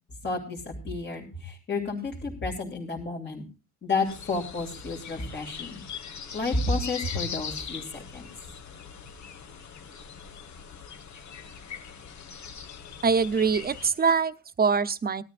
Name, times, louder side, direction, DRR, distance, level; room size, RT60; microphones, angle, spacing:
voice 1, 0.2-3.4 3.8-5.8 6.3-8.3, left 3 dB, 40° left, -2 dB, 2.9 m, -31 dB
sound 1, 4.0-13.9, left 6 dB, 75° left, 1.7 m, -41 dB
voice 2, 13.0-15.2, right 5 dB, 30° right, 13 dB, 0.8 m, -24 dB
19.5 x 12.5 x 2.5 m, 0.34 s
wide cardioid pair, 165°, 29 cm